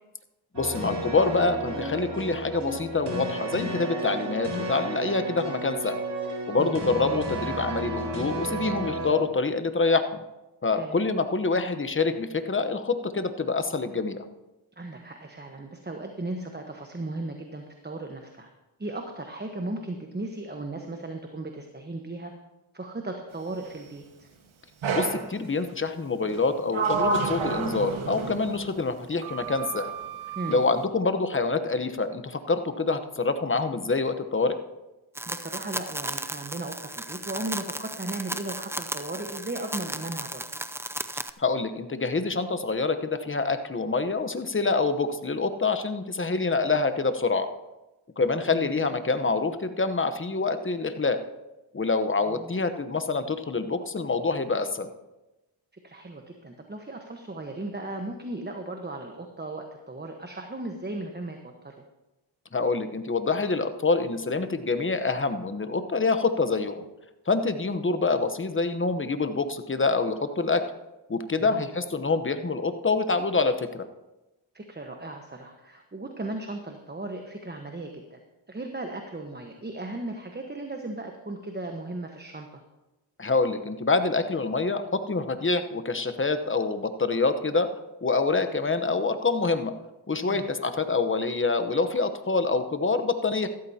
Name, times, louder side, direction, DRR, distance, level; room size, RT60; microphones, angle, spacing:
voice 1, 0.5-6.0 6.5-10.0 10.6-14.2 24.9-29.9 30.5-34.6 41.4-47.5 48.2-51.2 51.7-54.9 62.5-66.8 67.3-70.6 71.1-73.9 83.2-87.7 88.0-89.7 90.1-93.5, left 3 dB, 25° left, 9 dB, 1.0 m, -26 dB
sound 1, 0.5-9.1, right 2 dB, 55° right, 4.5 m, -32 dB
voice 2, 14.8-18.5 18.8-22.3 22.7-24.3 30.3-30.6 35.3-40.5 48.5-48.7 52.3-52.5 55.8-61.4 61.6-61.8 71.3-71.6 74.5-78.2 78.5-82.6 90.3-90.5, right 2 dB, 20° right, 3 dB, 1.2 m, -36 dB
Sliding door, 24.8-25.3 26.3-28.7 29.2-30.6, right 4 dB, 75° right, 1.5 m, -30 dB
sound 2, 35.2-41.3, right 1 dB, 5° right, 0.4 m, -35 dB
14.5 x 13.0 x 2.9 m, 1.0 s
cardioid pair, 60°, 48 cm